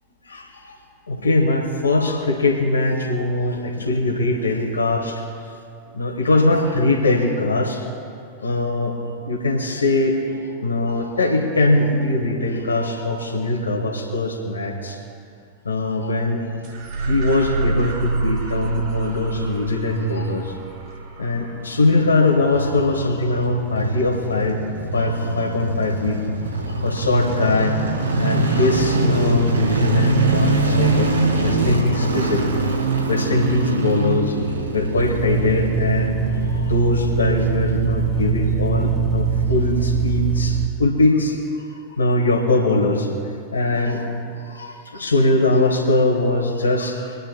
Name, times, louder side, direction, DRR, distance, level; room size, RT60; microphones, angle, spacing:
voice 1, 0.2-0.8 1.1-5.5 5.9-7.8 8.4-8.9 9.2-15.0 15.6-16.6 17.1-20.5 21.2-24.6 24.9-26.2 26.7-27.8 28.2-32.5 33.1-34.4 34.7-43.1 43.5-44.1 44.3-47.2, left 2 dB, 75° left, -1 dB, 1.6 m, -21 dB
sound 1, 16.6-25.3, right 4 dB, 45° right, 1.9 m, -29 dB
sound 2, 22.3-37.5 37.7-37.8, right 3 dB, 75° right, 3.4 m, -23 dB
sound 3, 35.0-40.7, right 6 dB, 5° right, 2.3 m, -22 dB
27.0 x 9.7 x 2.3 m, 2.4 s
figure-of-eight pair, 90°, 0 cm